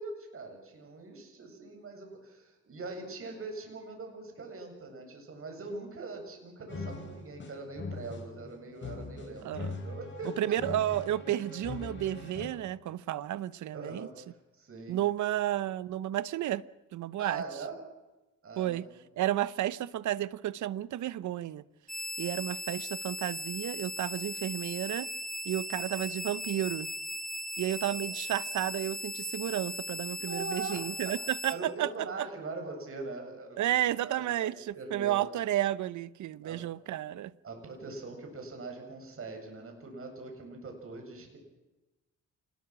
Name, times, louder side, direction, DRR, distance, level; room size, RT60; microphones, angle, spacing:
voice 1, 0.0-10.5 13.7-15.0 17.2-17.8 18.4-18.9 27.8-28.0 30.3-30.9 31.5-33.7 34.0-35.3 36.4-36.7 37.4-41.4, right 3 dB, 45° right, 7.9 m, -42 dB
sound 1, 6.7-12.5, left 3 dB, 40° left, 7.0 m, -41 dB
voice 2, 10.4-14.1 14.9-16.6 16.9-17.4 18.6-18.9 19.2-21.6 22.2-25.1 25.4-26.9 27.6-32.3 33.6-37.3, right 13 dB, 75° right, 1.0 m, -32 dB
sound 2, 21.9-31.5, left 1 dB, ahead, 3.8 m, -38 dB
27.5 x 21.0 x 6.2 m
cardioid pair, 90°, 30 cm